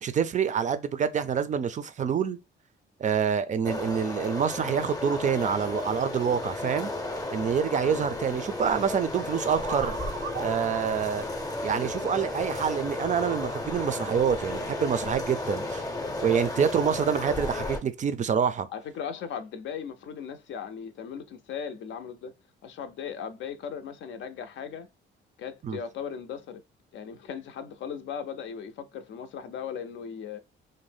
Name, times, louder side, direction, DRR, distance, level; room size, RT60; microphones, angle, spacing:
voice 1, 0.0-2.4 3.0-6.9 7.3-9.9 10.4-11.3 11.6-15.9 16.2-18.7 25.6-25.8, right 7 dB, 40° right, 0.4 m, -27 dB
sound 1, 3.6-17.8, left 2 dB, 20° left, 0.6 m, -33 dB
sound 2, 9.5-13.2, right 7 dB, 85° right, 0.6 m, -40 dB
voice 2, 18.7-22.3 22.6-24.9 25.4-26.6 26.9-30.4, left 7 dB, 70° left, 0.5 m, -37 dB
2.6 x 2.0 x 3.3 m
cardioid pair, 90°, 20 cm